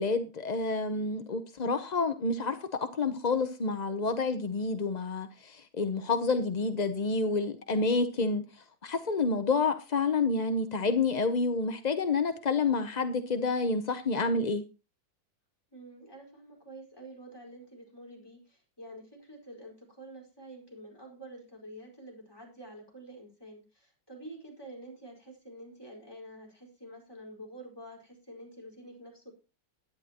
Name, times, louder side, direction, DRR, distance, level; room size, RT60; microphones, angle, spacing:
voice 1, 0.0-2.6 3.0-8.4 8.8-14.6, left 3 dB, 45° left, 0.5 m, -29 dB
voice 2, 15.7-29.3, right 1 dB, 10° left, 4.8 m, -48 dB
16.5 x 10.5 x 2.9 m
omnidirectional pair, 2.0 m